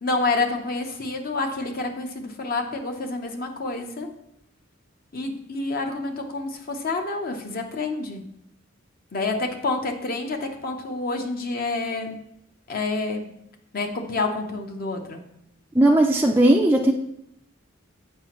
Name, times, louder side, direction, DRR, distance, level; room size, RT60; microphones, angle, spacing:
voice 1, 0.0-4.1 5.1-8.2 9.1-12.2 12.7-13.2 13.7-15.2, left 3 dB, 45° left, 4 dB, 0.7 m, -28 dB
voice 2, 15.7-16.9, right 1 dB, 10° right, 0 dB, 0.3 m, -17 dB
7.4 x 5.0 x 3.0 m, 0.76 s
head